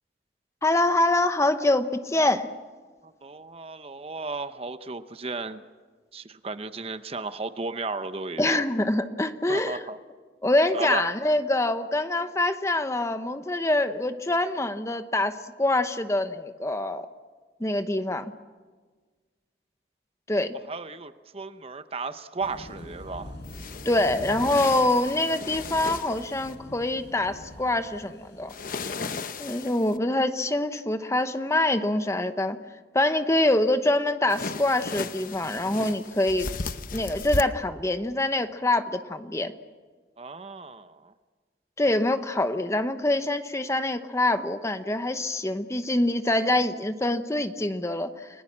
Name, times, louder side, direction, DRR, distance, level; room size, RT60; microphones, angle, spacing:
voice 1, 0.6-2.5 8.4-9.9 10.4-17.1 17.6-18.3 20.3-20.5 23.8-28.5 29.4-32.6 32.9-36.5 36.9-39.5 41.8-48.3, left 1 dB, 15° left, 9 dB, 0.9 m, -25 dB
voice 2, 3.2-5.6 6.1-8.6 9.5-10.0 10.7-11.0 20.7-23.3 40.2-41.0, right 3 dB, 35° right, 11 dB, 0.8 m, -34 dB
sound 1, 22.4-28.8, equal, 70° left, 5.9 m, -44 dB
sound 2, 23.4-26.5 28.5-30.0 34.3-37.4, left 4 dB, 50° left, 0.9 m, -35 dB
30.0 x 19.5 x 7.4 m, 1.4 s
head